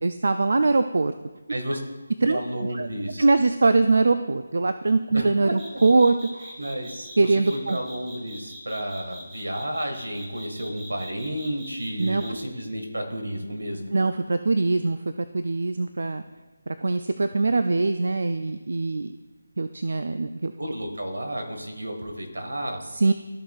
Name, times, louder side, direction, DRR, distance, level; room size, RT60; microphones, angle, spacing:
voice 1, 0.0-1.1 2.2-2.4 2.7-2.9 3.2-6.6 7.2-7.8 12.0-12.2 13.9-15.0 15.3-16.2 16.8-19.1 19.6-20.5 22.9-23.1, right 3 dB, 65° right, 10 dB, 0.4 m, -22 dB
voice 2, 2.3-3.2 5.1-5.8 6.6-13.9 20.6-22.8, right 1 dB, 85° right, 3 dB, 1.9 m, -32 dB
sound 1, 5.6-12.4, equal, 15° right, 1.6 m, -43 dB
14.5 x 5.9 x 2.5 m, 1.2 s
figure-of-eight pair, 160°, 0 cm